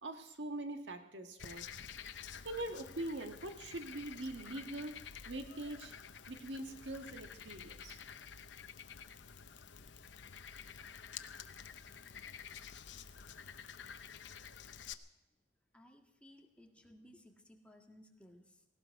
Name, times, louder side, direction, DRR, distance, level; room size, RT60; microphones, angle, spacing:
voice 1, 0.0-1.6 2.5-5.0 5.3-5.9 6.3-8.0, right 1 dB, 80° right, 6 dB, 1.7 m, -43 dB
Frog, 1.4-14.9, left 7 dB, 85° left, 0.8 m, -50 dB
voice 2, 15.7-18.7, left 1 dB, 5° left, 2 dB, 1.8 m, -60 dB
18.0 x 17.0 x 4.7 m, 0.90 s
head